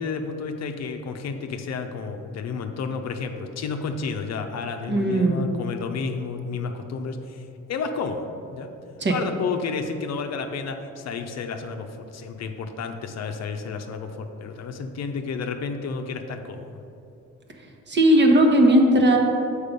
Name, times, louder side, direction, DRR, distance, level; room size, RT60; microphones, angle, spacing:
voice 1, 0.0-8.7 9.1-16.7, left 5 dB, 60° left, 6 dB, 0.7 m, -31 dB
voice 2, 4.9-5.4 9.0-9.1 17.9-19.2, right 1 dB, 35° right, 2 dB, 1.1 m, -17 dB
6.7 x 4.8 x 5.2 m, 2.7 s
cardioid pair, 90°, 30 cm